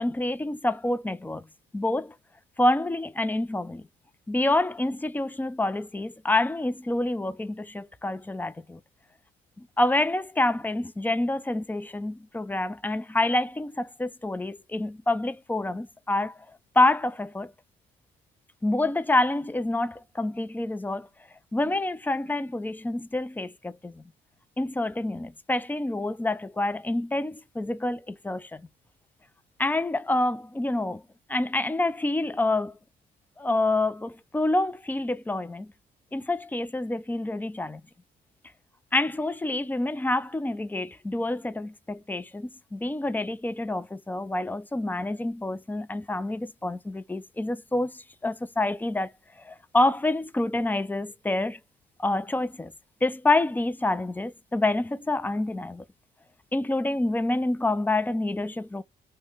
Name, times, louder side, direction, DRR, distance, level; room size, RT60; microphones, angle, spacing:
voice 1, 0.0-1.4 1.7-2.1 2.6-3.9 4.3-8.8 9.6-16.3 16.8-17.5 18.6-21.1 21.5-24.0 24.6-28.6 29.6-31.0 31.3-32.7 33.4-35.7 36.1-37.8 38.9-49.1 49.4-51.6 52.0-52.7 53.0-55.8 56.5-58.8, left 2 dB, 10° left, 0.3 m, -27 dB
2.8 x 2.1 x 3.2 m
cardioid pair, 90°, 20 cm